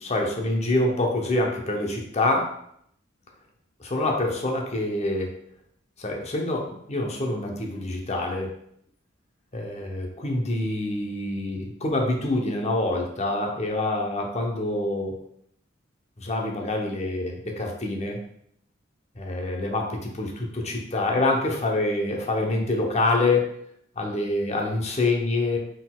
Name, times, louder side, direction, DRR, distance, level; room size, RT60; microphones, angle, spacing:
voice 1, 0.0-2.5 3.8-5.3 6.0-8.5 9.5-15.2 16.2-18.2 19.2-23.5 24.0-25.6, left 2 dB, 35° left, 1 dB, 0.7 m, -26 dB
4.2 x 3.8 x 2.3 m, 0.70 s
head